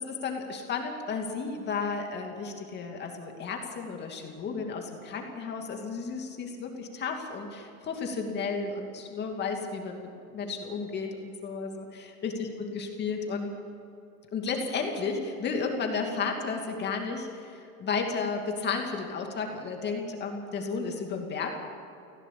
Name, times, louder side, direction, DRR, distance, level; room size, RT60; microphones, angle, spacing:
voice 1, 0.2-12.3 12.7-13.5 14.3-21.6, left 4 dB, 25° left, 2 dB, 2.5 m, -33 dB
18.5 x 17.0 x 8.5 m, 2.6 s
supercardioid pair, 150°, 43 cm